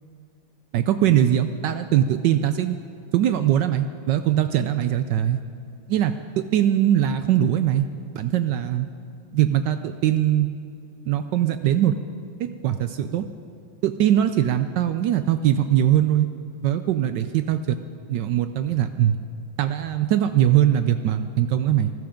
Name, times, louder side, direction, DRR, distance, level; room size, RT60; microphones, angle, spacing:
voice 1, 0.7-2.8 3.1-5.4 5.9-7.9 8.1-8.9 9.3-10.5 11.1-11.9 12.4-13.2 13.8-16.3 16.6-17.8 18.1-19.2 19.6-21.9, right 11 dB, 75° right, 9 dB, 1.0 m, -21 dB
19.5 x 12.5 x 5.1 m, 2.4 s
omnidirectional pair, 2.3 m